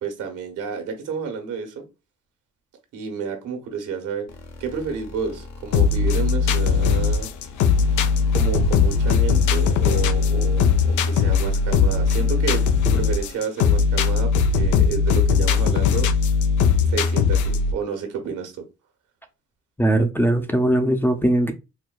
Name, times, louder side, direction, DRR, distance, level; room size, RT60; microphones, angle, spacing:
voice 1, 0.0-1.8 2.9-4.3 4.6-7.3 8.3-16.1 16.9-18.5, right 6 dB, 80° right, 1.2 m, -30 dB
sound 1, 4.3-13.4, left 4 dB, 60° left, 0.9 m, -41 dB
sound 2, 5.7-17.7, left 5 dB, 80° left, 0.5 m, -19 dB
voice 2, 19.8-21.5, right 1 dB, 5° left, 0.5 m, -20 dB
4.5 x 2.2 x 2.2 m
cardioid pair, 90°, 30 cm